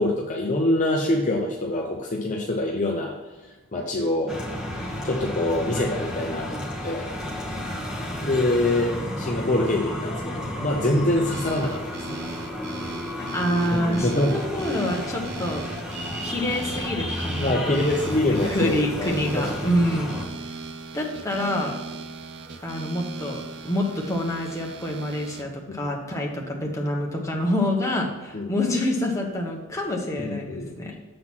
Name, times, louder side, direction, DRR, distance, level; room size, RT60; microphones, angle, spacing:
voice 1, 0.0-3.1 3.7-4.4 4.8-7.1 8.2-12.2 13.7-14.3 17.4-19.7 28.3-28.5 30.2-30.7, left 1 dB, 35° left, -1 dB, 0.7 m, -25 dB
sound 1, 4.3-20.3, left 1 dB, 5° right, 1.3 m, -32 dB
sound 2, 11.3-25.4, right 3 dB, 50° right, 0.5 m, -39 dB
voice 2, 13.2-15.7 16.2-20.2 20.5-20.6 20.9-21.7 22.6-30.9, left 1 dB, 15° left, -1 dB, 1.1 m, -27 dB
7.6 x 3.8 x 6.0 m, 1.3 s
head